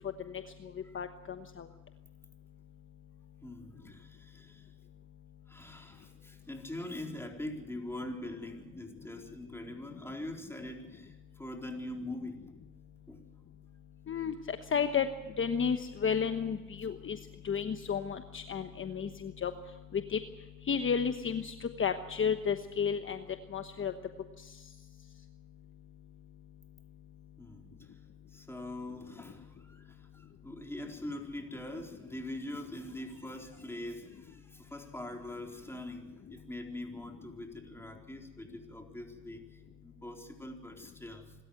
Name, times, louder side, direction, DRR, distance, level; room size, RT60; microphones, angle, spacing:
voice 1, 3.4-4.7 5.5-12.4 13.1-13.2 27.4-28.0 28.3-41.3, left 1 dB, 10° left, 2 dB, 4.1 m, -43 dB
voice 2, 14.7-15.1 15.4-17.2 17.4-19.5 20.1-20.2 20.7-23.2 23.5-23.9, left 7 dB, 40° left, 8 dB, 1.2 m, -31 dB
26.0 x 13.5 x 8.0 m, 1.2 s
cardioid pair, 90°, 30 cm